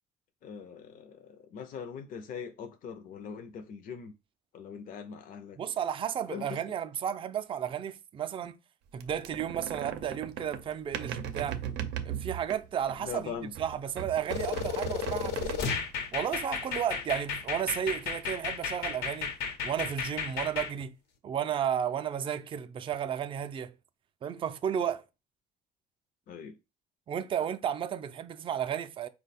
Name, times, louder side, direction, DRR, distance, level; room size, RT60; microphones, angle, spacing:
voice 1, 0.4-4.1 4.5-5.6 6.3-6.6 13.0-13.5 26.3-26.6, left 6 dB, 55° left, 0.5 m, -41 dB
voice 2, 5.6-8.6 8.9-11.6 12.0-15.6 16.1-19.3 19.6-21.0 21.2-23.7 24.2-25.0 27.1-29.1, right 9 dB, 30° right, 0.3 m, -33 dB
sound 1, 9.0-13.2 13.6-16.0, right 9 dB, 90° right, 0.5 m, -38 dB
sound 2, 14.3-20.7, left 6 dB, 85° left, 0.8 m, -34 dB
4.5 x 2.2 x 4.1 m
cardioid pair, 110°, 17 cm